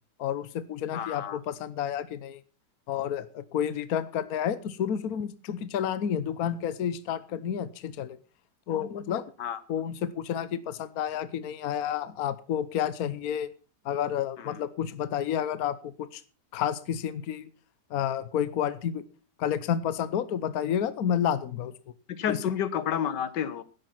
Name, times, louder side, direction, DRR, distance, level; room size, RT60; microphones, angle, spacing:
voice 1, 0.2-2.4 2.9-8.2 8.7-9.3 9.7-13.5 13.8-16.2 16.5-17.5 17.9-19.0 19.4-21.7 22.3-22.4, left 9 dB, 60° left, 15 dB, 1.3 m, -30 dB
voice 2, 0.9-1.4 9.4-9.6 14.4-14.5 22.2-23.6, left 9 dB, 80° left, 15 dB, 1.6 m, -30 dB
12.0 x 10.5 x 5.8 m, 0.35 s
omnidirectional pair, 1.9 m